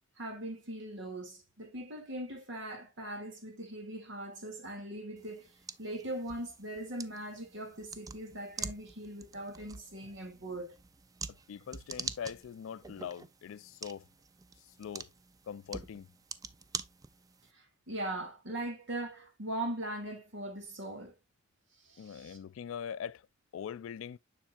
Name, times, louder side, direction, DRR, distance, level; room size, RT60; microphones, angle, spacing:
voice 1, 0.2-5.5 5.8-10.7 17.5-21.1 21.8-22.4, right 1 dB, 65° right, 2.2 m, -40 dB
sound 1, 5.2-17.5, right 5 dB, 20° right, 0.3 m, -46 dB
voice 2, 11.3-14.0 14.8-15.1 15.5-16.1 22.0-23.2 23.5-24.2, left 7 dB, 70° left, 0.3 m, -42 dB
7.2 x 6.6 x 2.3 m
head